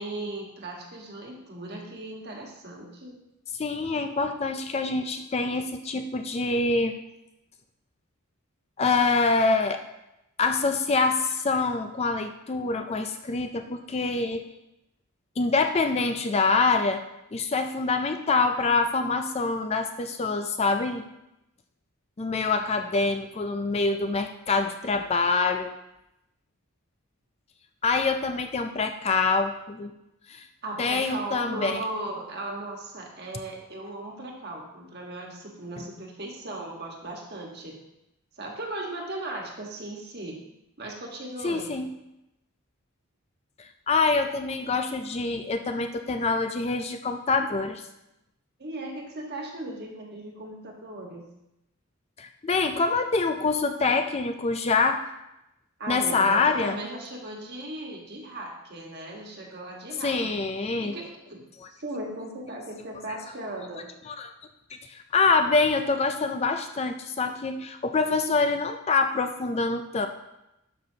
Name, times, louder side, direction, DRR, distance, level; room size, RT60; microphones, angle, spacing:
voice 1, 0.0-3.2 30.6-37.8 38.3-40.4 40.8-41.8 48.6-51.3 55.8-61.4 61.7-63.9, right 1 dB, 45° right, 0 dB, 1.5 m, -37 dB
voice 2, 3.5-6.9 8.8-9.8 10.4-14.4 15.4-17.0 17.3-21.1 22.2-25.7 27.8-29.9 30.3-30.5 30.8-31.8 41.4-41.9 43.6-47.8 52.2-55.0 55.9-56.8 60.0-60.9 61.6-61.7 63.1-63.2 64.1-64.3 64.9-70.1, left 4 dB, 30° left, 6 dB, 0.4 m, -25 dB
11.5 x 6.0 x 2.8 m, 0.89 s
head